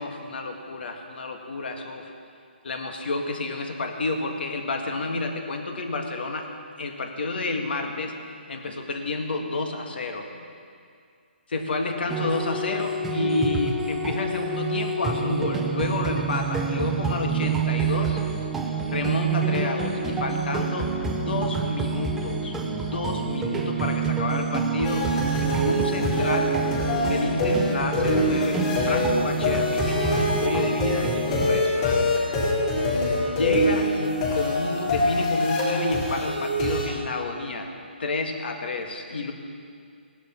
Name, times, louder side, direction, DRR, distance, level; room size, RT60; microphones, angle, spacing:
voice 1, 0.0-2.1 2.6-6.5 6.8-8.2 8.5-10.3 11.5-18.2 18.9-25.1 25.6-26.6 27.0-32.3 33.2-37.7 38.0-39.3, left 3 dB, 60° left, 4 dB, 1.8 m, -30 dB
sound 1, 12.1-31.6, right 4 dB, 5° right, 0.7 m, -27 dB
sound 2, 24.8-36.8, left 1 dB, 30° left, 4.3 m, -25 dB
18.0 x 11.5 x 4.4 m, 2.3 s
hypercardioid pair, 165°, 6 cm